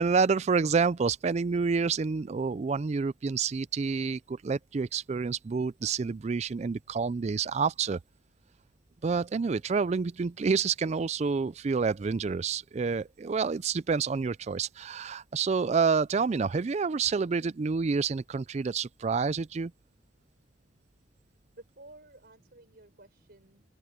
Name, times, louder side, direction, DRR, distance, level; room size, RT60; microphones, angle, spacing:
voice 1, 0.0-8.0 9.0-19.7, right 5 dB, 35° right, 0.4 m, -28 dB
voice 2, 21.5-23.6, right 2 dB, 55° right, 4.1 m, -53 dB
open air
head